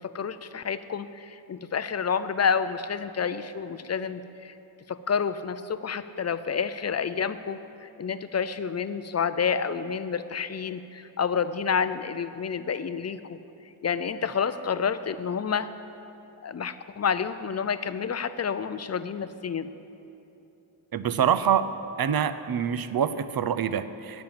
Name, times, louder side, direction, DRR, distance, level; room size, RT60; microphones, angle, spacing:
voice 1, 0.0-4.6 4.9-13.4 13.8-15.7 16.4-19.7, left 6 dB, 35° left, 12 dB, 0.5 m, -29 dB
voice 2, 20.9-21.7 22.0-24.2, right 8 dB, 50° right, 13 dB, 0.6 m, -25 dB
10.5 x 8.8 x 8.8 m, 2.9 s
wide cardioid pair, 120°, 47 cm